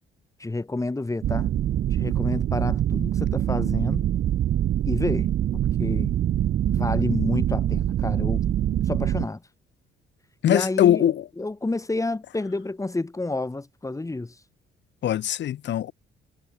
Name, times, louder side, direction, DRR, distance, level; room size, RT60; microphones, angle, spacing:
voice 1, 0.4-1.5 1.9-4.1 4.9-6.1 6.7-8.4 8.9-9.4 10.5-14.4, left 2 dB, 15° left, 1.9 m, -29 dB
sound 1, 1.2-9.3, right 11 dB, 60° right, 0.8 m, -24 dB
voice 2, 10.4-11.3 15.0-15.9, left 11 dB, 65° left, 1.0 m, -21 dB
cardioid pair, 90°, 20 cm